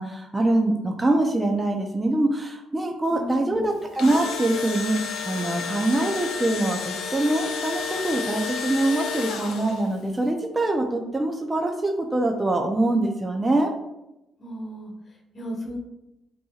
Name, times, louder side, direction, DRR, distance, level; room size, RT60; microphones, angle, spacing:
voice 1, 0.0-13.7, right 2 dB, 15° right, 2 dB, 0.5 m, -24 dB
voice 2, 3.1-3.7 14.4-15.8, equal, 45° left, -2 dB, 1.1 m, -35 dB
Engine / Drill, 3.7-10.0, left 6 dB, 85° left, 0.6 m, -31 dB
7.3 x 2.8 x 2.4 m, 0.90 s
cardioid pair, 90°, 0 cm